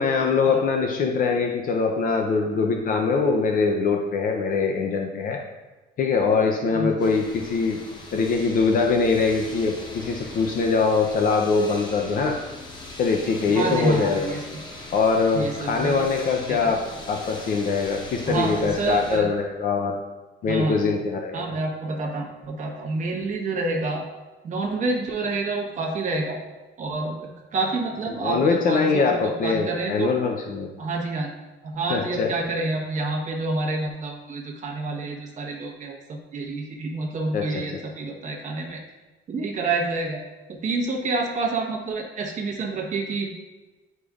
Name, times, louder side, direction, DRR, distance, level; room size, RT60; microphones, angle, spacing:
voice 1, 0.0-5.4 6.0-7.8 8.1-12.3 13.0-14.4 14.9-16.8 17.1-19.9 20.4-21.5 28.2-30.7 31.9-32.3 37.3-37.4, left 4 dB, 45° left, 2 dB, 0.6 m, -23 dB
sound 1, 7.0-19.2, left 2 dB, 20° left, 0.9 m, -40 dB
voice 2, 13.5-14.6 15.3-16.0 16.5-16.7 18.2-19.3 20.5-20.8 21.3-24.0 24.4-26.4 26.8-30.1 30.8-31.3 31.6-38.8 39.3-40.2 40.5-43.3, right 3 dB, 35° right, -1 dB, 1.2 m, -28 dB
9.5 x 5.1 x 2.4 m, 1.2 s
cardioid pair, 170°, 21 cm